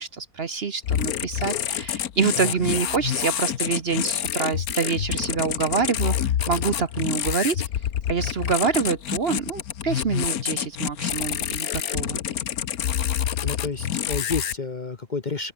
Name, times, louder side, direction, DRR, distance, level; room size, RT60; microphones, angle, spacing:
voice 1, 0.0-6.1 6.5-7.6 8.1-12.2, right 5 dB, 45° right, 1.2 m, -26 dB
sound 1, 0.8-14.5, left 10 dB, 75° left, 1.5 m, -27 dB
voice 2, 2.4-2.7 13.4-15.5, left 4 dB, 35° left, 1.1 m, -30 dB
open air
omnidirectional pair, 1.6 m